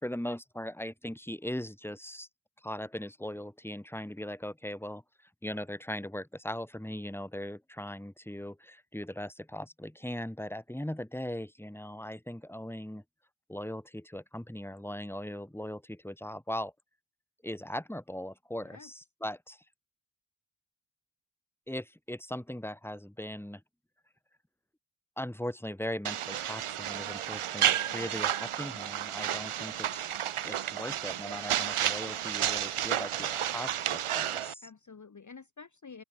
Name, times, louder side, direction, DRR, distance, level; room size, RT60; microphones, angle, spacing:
voice 1, 0.0-2.3 2.6-13.0 13.5-16.7 17.4-19.6 21.7-23.6 25.2-30.1 30.4-34.7, left 1 dB, 5° left, 2.1 m, -39 dB
voice 2, 18.6-18.9 27.8-28.3 34.6-36.0, left 5 dB, 35° left, 1.1 m, -50 dB
sound 1, 26.0-34.5, right 10 dB, 85° right, 0.8 m, -31 dB
open air
wide cardioid pair, 95°, 49 cm